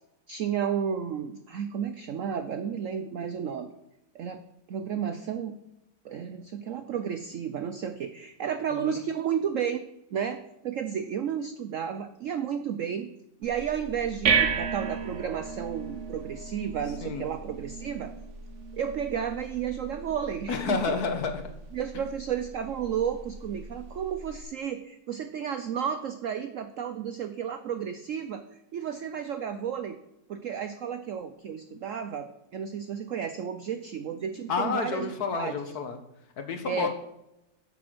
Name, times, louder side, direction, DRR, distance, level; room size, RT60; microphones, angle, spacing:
voice 1, 0.3-3.7 4.1-4.4 4.7-5.6 6.0-9.8 10.1-13.1 13.4-18.1 18.7-20.9 21.7-28.5 28.7-30.0 30.3-35.6 36.6-36.9, right 8 dB, 70° right, 9 dB, 0.7 m, -32 dB
sound 1, 13.4-24.4, right 5 dB, 50° right, 1.0 m, -34 dB
voice 2, 20.5-21.4 34.5-36.0 36.4-36.9, left 5 dB, 60° left, 7 dB, 1.5 m, -30 dB
8.6 x 6.9 x 6.2 m, 0.88 s
omnidirectional pair, 2.0 m